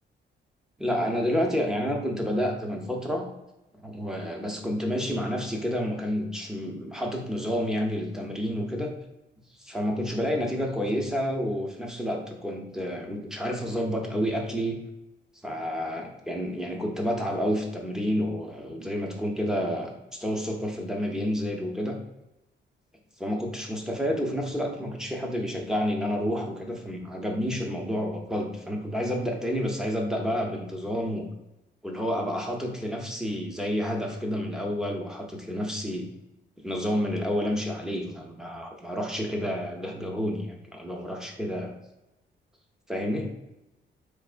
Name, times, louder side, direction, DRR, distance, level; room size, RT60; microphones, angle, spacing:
voice 1, 0.8-3.3 3.8-8.9 9.6-14.8 15.4-22.0 23.2-31.3 31.8-36.1 36.6-41.7 42.9-43.3, equal, 5° right, 1 dB, 0.6 m, -29 dB
4.2 x 3.3 x 2.4 m, 0.94 s
wide cardioid pair, 160°, 20 cm